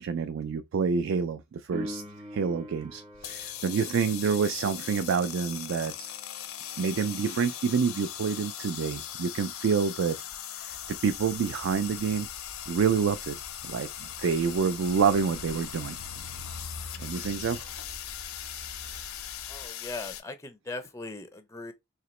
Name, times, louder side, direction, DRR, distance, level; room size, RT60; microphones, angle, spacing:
voice 1, 0.0-2.0 2.3-6.1 6.8-10.2 10.6-12.3 12.7-13.4 13.6-13.9 14.2-16.0 17.0-17.7, right 6 dB, 60° right, 0.3 m, -27 dB
Piano, 1.7-12.1 19.7-19.8, left 1 dB, 25° right, 0.7 m, -47 dB
sound 1, 3.1-20.2, left 11 dB, 80° left, 0.6 m, -39 dB
sound 2, 10.7-19.7, equal, 90° right, 0.8 m, -47 dB
voice 2, 19.5-21.7, left 3 dB, 15° left, 0.4 m, -39 dB
3.9 x 2.9 x 3.0 m
head